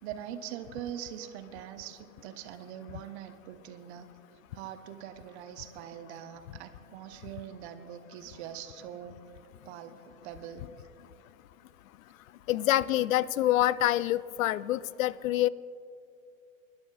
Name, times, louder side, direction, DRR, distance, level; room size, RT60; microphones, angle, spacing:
voice 1, 0.0-4.1 4.5-9.2 9.6-10.0 10.2-10.6, right 10 dB, 50° right, 9 dB, 1.0 m, -42 dB
voice 2, 12.5-15.5, left 14 dB, 70° left, 20 dB, 0.5 m, -26 dB
24.5 x 11.5 x 2.4 m, 2.6 s
hypercardioid pair, 110°, 41 cm